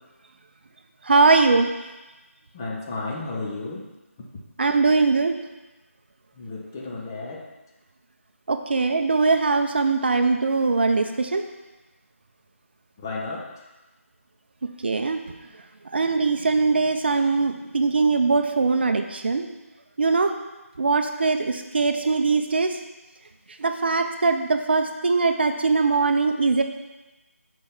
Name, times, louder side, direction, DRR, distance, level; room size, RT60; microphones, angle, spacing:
voice 1, 1.1-1.7 4.6-5.4 8.5-11.4 14.8-15.2 15.9-19.5 20.0-20.3 20.8-22.8 23.6-26.6, right 4 dB, 45° right, 6 dB, 0.6 m, -21 dB
voice 2, 2.5-3.9 6.4-7.5 13.0-13.5, left 3 dB, 15° left, -2 dB, 0.6 m, -33 dB
6.9 x 4.6 x 5.4 m, 1.1 s
figure-of-eight pair, 170°, 8 cm